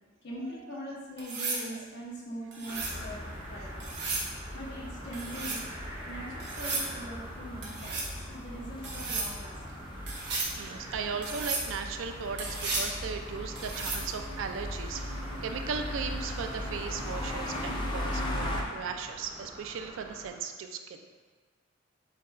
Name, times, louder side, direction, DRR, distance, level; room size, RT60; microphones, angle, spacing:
voice 1, 0.2-4.0 4.5-5.7 6.1-9.8, equal, 60° left, -3 dB, 0.9 m, -42 dB
sound 1, 1.2-1.6 2.5-3.0 3.8-4.3 5.1-5.6 6.4-6.9 7.6-8.1 8.8-9.3 10.1-10.5 11.2-11.7 12.4-12.9 13.6-14.1 16.0-16.2, right 3 dB, 65° right, 1.0 m, -34 dB
voice 2, 1.5-1.8 3.6-3.7 10.5-21.0, right 6 dB, 80° right, 6 dB, 0.3 m, -37 dB
sound 2, 2.6-20.3, right 1 dB, 35° right, 1.5 m, -47 dB
sound 3, 2.8-18.6, left 1 dB, 25° left, 0.5 m, -39 dB
7.1 x 2.4 x 2.3 m, 1.4 s
head